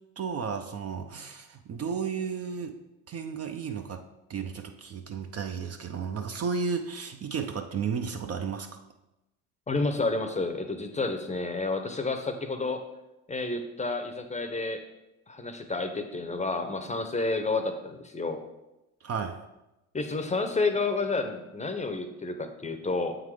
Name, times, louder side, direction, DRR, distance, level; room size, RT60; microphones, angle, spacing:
voice 1, 0.2-2.8 3.1-8.8 19.0-19.4, right 6 dB, 35° right, 6 dB, 0.6 m, -33 dB
voice 2, 9.7-12.8 13.3-14.8 15.3-18.4 19.9-23.2, left 3 dB, 15° left, 7 dB, 0.7 m, -30 dB
7.3 x 3.8 x 4.8 m, 0.95 s
hypercardioid pair, 70°, 42 cm